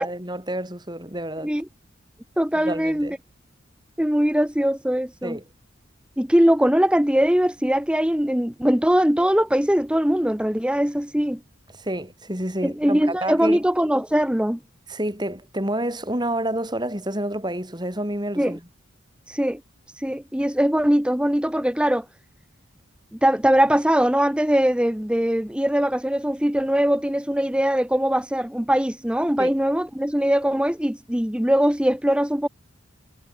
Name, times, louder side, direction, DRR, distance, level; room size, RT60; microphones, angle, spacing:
voice 1, 0.0-1.5 2.5-3.1 5.2-5.4 11.8-13.6 14.9-18.6 29.4-29.5, right 1 dB, 20° right, 5.7 m, -29 dB
voice 2, 2.4-3.2 4.0-5.4 6.2-11.4 12.6-14.6 18.4-18.6 19.3-19.6 20.0-22.1 23.1-32.5, equal, 5° right, 0.8 m, -21 dB
head